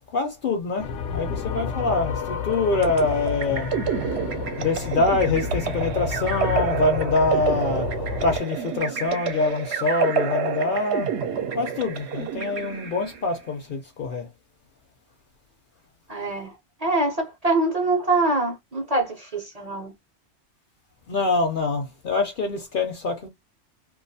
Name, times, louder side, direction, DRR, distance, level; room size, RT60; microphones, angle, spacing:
voice 1, 0.1-3.7 4.6-7.9 8.2-11.1 11.5-14.3 21.1-23.3, left 3 dB, 60° left, 0.6 m, -25 dB
sound 1, 0.8-8.4, left 5 dB, 90° left, 0.9 m, -31 dB
sound 2, 2.8-13.3, right 7 dB, 70° right, 0.8 m, -29 dB
voice 2, 16.1-19.9, right 2 dB, 40° right, 0.6 m, -24 dB
2.4 x 2.3 x 2.5 m
omnidirectional pair, 1.2 m